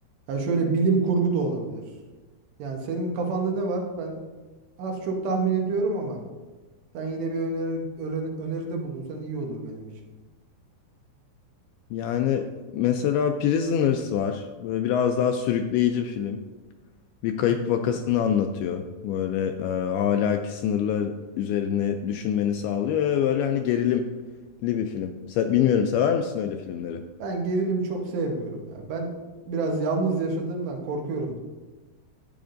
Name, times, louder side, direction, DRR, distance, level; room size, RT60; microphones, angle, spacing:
voice 1, 0.3-1.8 2.6-4.2 4.8-6.2 6.9-9.9 17.5-17.6 27.2-29.1 29.5-31.4, right 3 dB, 85° right, 1 dB, 3.4 m, -27 dB
voice 2, 11.9-12.5 12.7-16.4 17.2-24.1 24.6-27.0, left 8 dB, 85° left, 5 dB, 2.3 m, -25 dB
12.0 x 8.6 x 2.6 m, 1.2 s
omnidirectional pair, 4.8 m